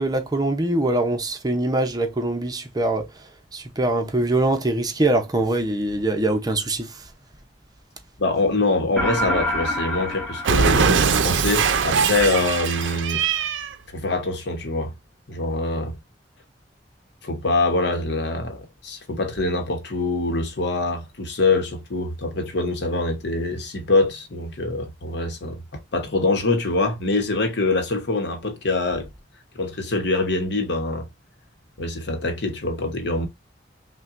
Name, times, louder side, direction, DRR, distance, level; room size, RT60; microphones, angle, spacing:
voice 1, 0.0-3.1 3.5-7.0, right 2 dB, 20° right, 0.7 m, -23 dB
voice 2, 8.2-13.3 13.9-14.9 15.3-16.0 17.2-29.1 29.5-31.1 31.8-33.3, left 2 dB, 65° left, 0.9 m, -24 dB
sound 1, 9.0-11.6, equal, 5° left, 1.1 m, -27 dB
Cat, 10.4-13.7, right 6 dB, 90° right, 0.5 m, -21 dB
5.7 x 2.2 x 2.5 m
head